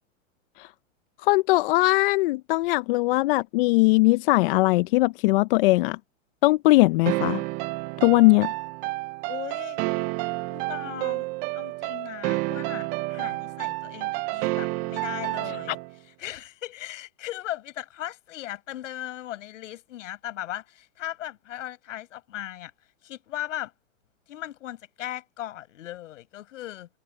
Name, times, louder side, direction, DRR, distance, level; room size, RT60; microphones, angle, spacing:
voice 1, 1.2-6.0 6.4-7.4 8.0-8.5 15.7-15.8, left 21 dB, 45° left, 0.5 m, -20 dB
sound 1, 7.1-15.9, right 22 dB, 25° right, 0.4 m, -30 dB
voice 2, 9.3-9.8 10.5-11.3 11.5-15.8 16.2-22.7 23.0-23.7 24.3-26.9, left 13 dB, 70° left, 6.9 m, -37 dB
hypercardioid pair, 135°, 39 cm